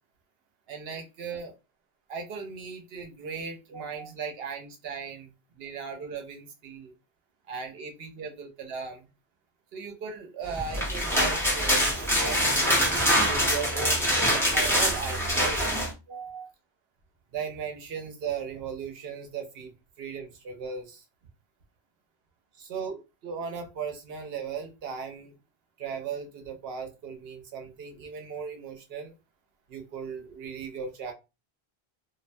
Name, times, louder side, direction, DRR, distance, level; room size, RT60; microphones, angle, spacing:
voice 1, 0.7-1.5 2.1-5.3 5.6-6.9 7.5-9.1 9.7-12.9 13.2-15.6 16.1-16.5 17.3-19.7 20.0-21.0 22.6-25.3 25.8-29.1 29.7-31.1, right 5 dB, 70° right, 4 dB, 0.8 m, -37 dB
sound 1, 10.6-15.9, equal, 5° left, 0.7 m, -24 dB
2.5 x 2.1 x 2.5 m, 0.27 s
omnidirectional pair, 1.1 m